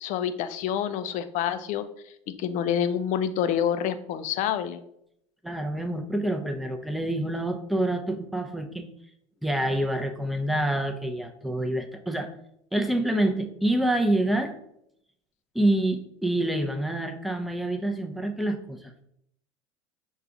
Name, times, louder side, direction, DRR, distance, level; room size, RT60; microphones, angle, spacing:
voice 1, 0.0-1.8 2.4-4.8, left 9 dB, 50° left, 11 dB, 0.5 m, -27 dB
voice 2, 5.4-8.9 9.4-12.3 12.7-14.5 15.5-18.9, right 1 dB, ahead, 4 dB, 0.6 m, -27 dB
5.5 x 2.4 x 3.8 m, 0.75 s
hypercardioid pair, 80°, 16 cm